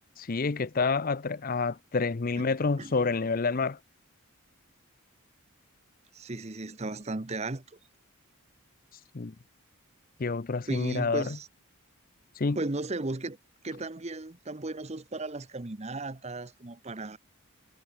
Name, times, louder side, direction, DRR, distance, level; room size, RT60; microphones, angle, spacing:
voice 1, 0.2-3.8 9.1-9.3 10.2-11.2 12.4-12.6, left 4 dB, 40° left, 0.6 m, -28 dB
voice 2, 6.1-7.8 10.7-11.5 12.5-13.4 13.6-17.2, right 2 dB, 30° right, 0.9 m, -35 dB
head